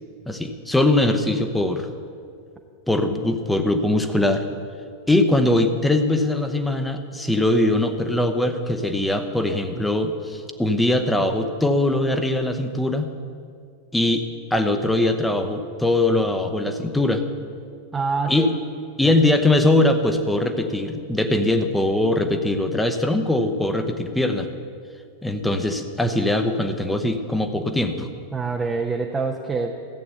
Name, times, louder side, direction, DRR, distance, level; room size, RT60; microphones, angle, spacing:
voice 1, 0.3-1.9 2.9-4.4 5.1-13.1 13.9-14.2 14.5-17.2 18.3-18.5 19.0-24.5 25.2-28.1, left 1 dB, 5° left, 7 dB, 1.0 m, -21 dB
voice 2, 9.5-9.9 17.9-18.5 19.0-19.1 28.3-29.7, right 4 dB, 15° right, 1 dB, 0.9 m, -26 dB
14.5 x 8.4 x 8.1 m, 2.3 s
figure-of-eight pair, 90°, 0 cm